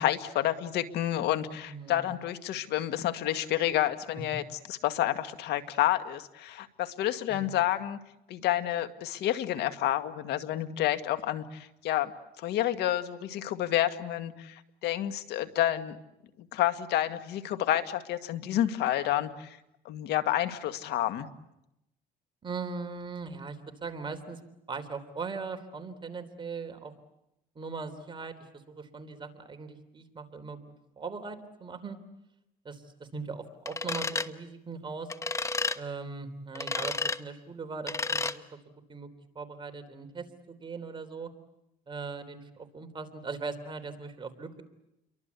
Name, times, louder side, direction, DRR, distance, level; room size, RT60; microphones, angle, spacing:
voice 1, 0.0-4.4 4.7-8.0 8.3-12.1 12.4-16.0 16.5-19.6 19.9-21.3, left 13 dB, 80° left, 10 dB, 1.9 m, -29 dB
voice 2, 1.7-2.1 7.3-7.6 22.4-24.4 24.7-26.9 27.6-30.6 31.0-32.0 32.7-35.1 35.7-38.6 38.9-39.1 39.4-41.3 41.9-44.6, right 4 dB, 30° right, 7 dB, 3.4 m, -40 dB
sound 1, 33.7-34.3 35.1-35.8 36.5-37.2 37.9-38.4, left 3 dB, 15° left, 1.1 m, -31 dB
30.0 x 23.5 x 8.3 m, 0.86 s
cardioid pair, 110°, 17 cm